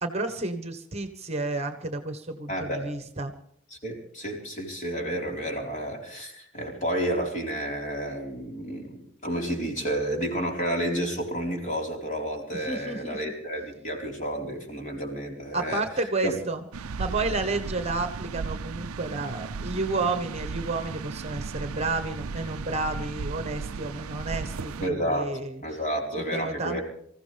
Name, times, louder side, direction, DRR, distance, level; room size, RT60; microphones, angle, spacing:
voice 1, 0.0-3.3 12.5-13.2 15.5-16.6 17.0-25.6 26.3-26.8, right 3 dB, 30° right, 8 dB, 1.2 m, -31 dB
voice 2, 2.5-2.8 3.8-15.8 16.2-16.4 24.8-26.8, right 1 dB, 35° left, 1 dB, 4.4 m, -31 dB
sound 1, 16.7-24.9, right 4 dB, 80° right, 0.5 m, -35 dB
25.5 x 15.0 x 3.4 m, 0.68 s
head